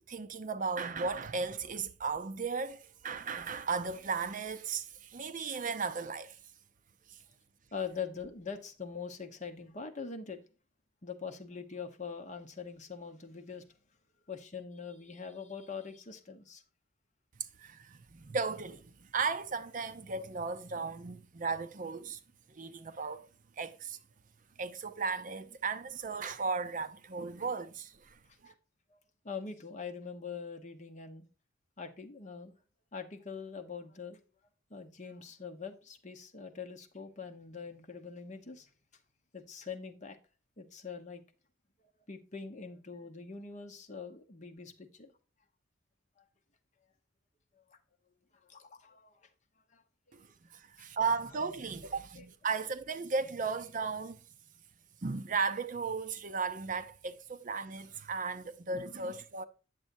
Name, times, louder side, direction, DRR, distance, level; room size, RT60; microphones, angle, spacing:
voice 1, 0.0-6.4 7.1-7.2 17.4-22.2 22.5-23.3 23.6-24.0 24.6-28.5 50.1-54.2 55.0-59.4, right 4 dB, 40° right, 0.5 m, -36 dB
voice 2, 7.7-10.4 11.0-13.6 14.3-16.6 28.5-28.6 28.9-29.0 29.2-31.3 31.8-32.5 32.9-34.2 34.7-38.7 39.3-40.2 40.6-41.2 42.1-45.1 46.2-46.3 47.7-47.8 48.5-49.3 49.7-49.8 50.1-50.2 52.2-52.3, left 5 dB, 40° left, 1.0 m, -43 dB
9.1 x 7.2 x 2.6 m
head